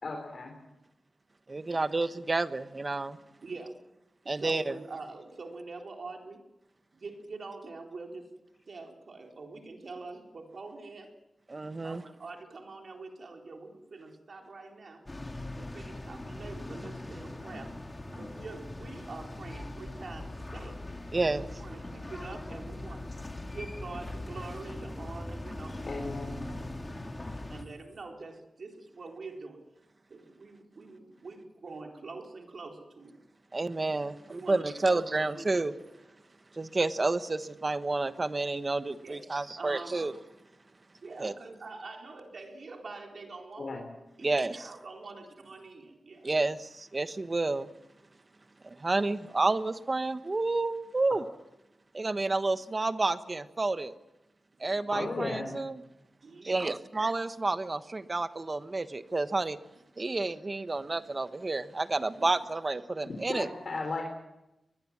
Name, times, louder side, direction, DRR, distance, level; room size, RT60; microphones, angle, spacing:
voice 1, 0.0-0.5 25.9-26.4 43.6-43.8 54.9-55.5 63.1-64.0, left 3 dB, 60° left, 2 dB, 4.0 m, -35 dB
voice 2, 1.5-3.2 4.3-4.7 11.5-12.0 21.1-21.5 33.5-35.7 36.5-40.1 41.2-41.3 44.2-44.7 46.2-47.7 48.6-51.2 51.9-53.9 54.6-55.8 56.4-59.6 60.0-63.5, right 3 dB, 35° right, 11 dB, 1.2 m, -30 dB
voice 3, 3.4-3.8 4.2-6.4 6.9-8.3 8.7-11.1 11.8-15.0 15.5-17.7 18.1-20.8 21.3-23.1 23.5-25.8 26.2-26.3 27.5-29.6 30.1-33.2 34.3-35.9 39.0-40.1 41.0-43.8 44.2-46.4 54.6-54.8 56.2-56.7 62.2-62.3, right 3 dB, 65° right, 2 dB, 4.0 m, -45 dB
sound 1, 15.1-27.6, left 2 dB, 25° left, 2.3 m, -41 dB
22.0 x 21.0 x 7.4 m, 0.94 s
wide cardioid pair, 95°, 0 cm